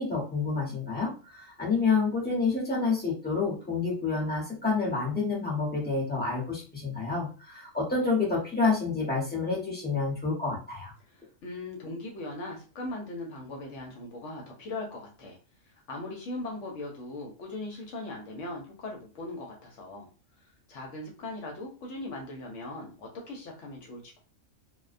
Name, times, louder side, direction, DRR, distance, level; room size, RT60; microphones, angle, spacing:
voice 1, 0.0-10.9, left 4 dB, 10° left, -4 dB, 0.7 m, -28 dB
voice 2, 11.1-15.4 15.6-20.1 20.7-24.2, left 2 dB, 70° left, 0 dB, 0.9 m, -39 dB
2.3 x 2.1 x 2.4 m, 0.35 s
omnidirectional pair, 1.4 m